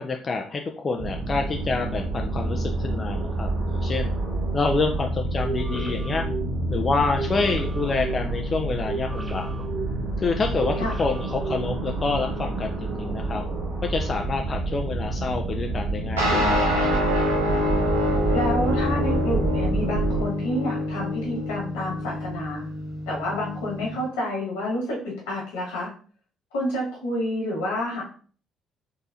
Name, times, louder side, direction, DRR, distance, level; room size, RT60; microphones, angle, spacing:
voice 1, 0.0-4.1 4.5-6.3 6.7-9.5 10.2-13.4 13.8-16.9, left 4 dB, 40° left, 3 dB, 0.4 m, -27 dB
sound 1, 1.0-20.2, right 2 dB, 60° right, 1.0 m, -28 dB
sound 2, 5.3-12.2, right 5 dB, 20° right, 0.5 m, -35 dB
sound 3, 16.2-24.0, left 1 dB, 90° right, 0.8 m, -26 dB
voice 2, 18.3-22.7 23.1-25.9 26.5-28.0, left 1 dB, 80° left, -4 dB, 1.5 m, -29 dB
4.0 x 2.6 x 2.7 m, 0.41 s
hypercardioid pair, 50°, 0 cm